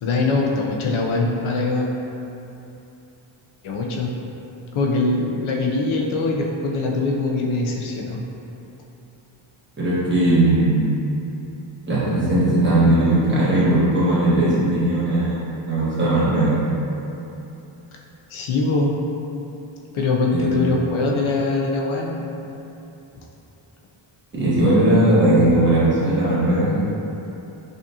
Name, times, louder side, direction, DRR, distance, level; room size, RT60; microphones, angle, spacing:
voice 1, 0.0-1.9 3.6-4.2 4.7-8.2 18.3-19.0 19.9-22.3, left 3 dB, 75° left, -1 dB, 0.6 m, -22 dB
voice 2, 9.8-10.9 11.9-16.5 20.3-20.6 24.3-26.8, right 1 dB, 20° right, -10 dB, 1.1 m, -18 dB
5.1 x 2.4 x 2.7 m, 2.9 s
wide cardioid pair, 115°, 50 cm